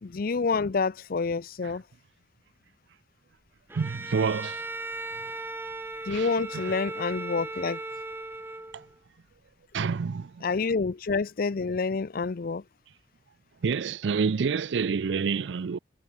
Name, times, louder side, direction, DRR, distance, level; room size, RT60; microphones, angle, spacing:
voice 1, 0.0-1.8 6.1-7.8 10.4-12.6, left 4 dB, 55° left, 0.5 m, -28 dB
Bowed string instrument, 3.7-9.0, right 2 dB, 15° right, 1.5 m, -37 dB
voice 2, 3.7-4.6 6.1-6.3 6.6-6.7 8.7-8.8 9.7-10.4 13.6-15.8, right 5 dB, 85° right, 0.5 m, -28 dB
head